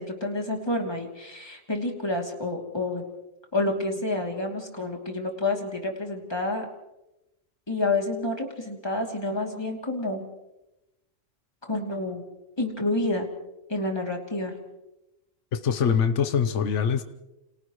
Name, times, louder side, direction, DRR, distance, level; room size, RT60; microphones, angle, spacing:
voice 1, 0.0-3.0 3.5-6.7 7.7-10.2 11.6-12.2 12.6-13.3 13.7-14.5, left 2 dB, 20° left, 1 dB, 3.0 m, -29 dB
voice 2, 15.5-17.0, left 7 dB, 75° left, 9 dB, 1.3 m, -23 dB
29.5 x 28.0 x 3.2 m, 0.95 s
omnidirectional pair, 1.3 m